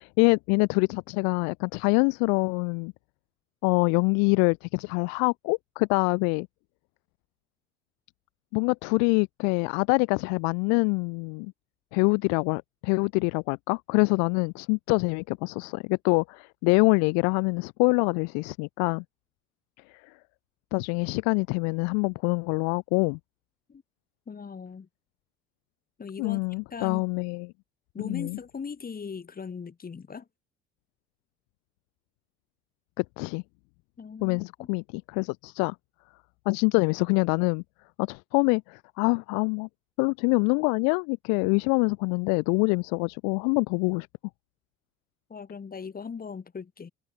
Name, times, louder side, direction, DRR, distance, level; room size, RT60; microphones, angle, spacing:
voice 1, 0.0-2.9 3.6-6.5 8.5-11.5 11.9-19.0 19.9-20.1 20.7-23.2 26.2-27.5 28.0-28.4 33.0-33.4 34.2-35.8 36.5-37.6 38.0-39.7 40.0-44.1, left 36 dB, 60° left, 0.5 m, -25 dB
voice 2, 24.3-24.9 26.0-27.0 27.9-30.2 34.0-34.7 45.3-46.9, left 6 dB, 30° left, 2.6 m, -39 dB
figure-of-eight pair, 60°, 32 cm